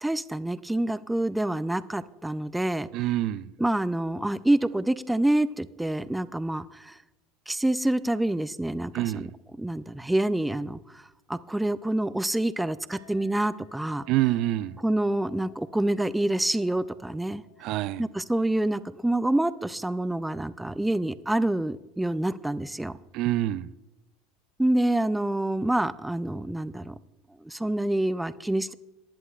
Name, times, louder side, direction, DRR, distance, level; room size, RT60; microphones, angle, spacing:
voice 1, 0.0-2.9 3.6-6.9 7.5-9.3 9.6-10.8 11.3-14.0 14.8-17.4 18.0-23.0 24.6-27.0 27.4-28.7, right 1 dB, 5° right, 0.5 m, -27 dB
voice 2, 2.9-3.5 8.9-9.3 14.1-14.8 17.6-18.1 23.1-23.7, right 15 dB, 60° right, 0.4 m, -26 dB
Chink clink, 12.9-21.6, left 9 dB, 85° right, 2.8 m, -59 dB
19.0 x 11.0 x 2.4 m
hypercardioid pair, 85°, 0 cm